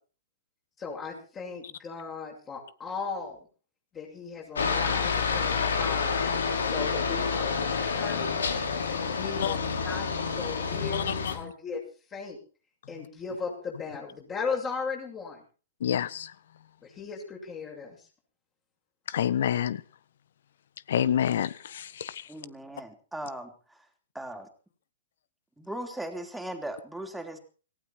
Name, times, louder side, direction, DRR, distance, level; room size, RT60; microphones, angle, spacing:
voice 1, 0.8-3.5 3.9-8.5 8.9-11.8 12.1-12.4 12.9-15.4 16.8-18.0, left 5 dB, 25° left, -1 dB, 7.1 m, -37 dB
Aircraft, 4.6-11.4, left 5 dB, 85° left, 4.9 m, -28 dB
voice 2, 15.8-16.3 19.1-19.8 20.9-22.3, left 9 dB, 70° left, 18 dB, 1.4 m, -28 dB
voice 3, 22.3-23.9 24.1-24.5 25.6-27.4, right 1 dB, ahead, 3 dB, 3.9 m, -38 dB
18.5 x 16.5 x 4.6 m, 0.38 s
hypercardioid pair, 125°, 0 cm